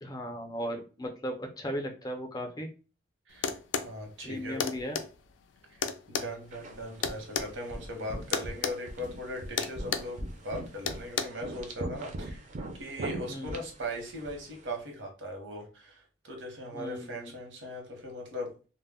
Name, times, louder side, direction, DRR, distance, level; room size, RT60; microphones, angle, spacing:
voice 1, 0.0-2.7 4.2-5.0 13.3-13.6 16.7-17.2, equal, 20° left, 3 dB, 0.5 m, -36 dB
voice 2, 3.3-3.6 3.8-4.7 6.1-10.2 10.4-12.5 12.8-18.5, equal, 80° right, 2 dB, 0.8 m, -39 dB
sound 1, 3.4-3.9 4.6-5.1 5.8-7.5 8.3-8.8 9.0-9.2 9.6-10.1 10.9-11.2, left 6 dB, 80° left, 0.3 m, -31 dB
sound 2, 6.5-14.7, right 1 dB, 40° right, 0.4 m, -41 dB
2.1 x 2.0 x 3.4 m, 0.36 s
head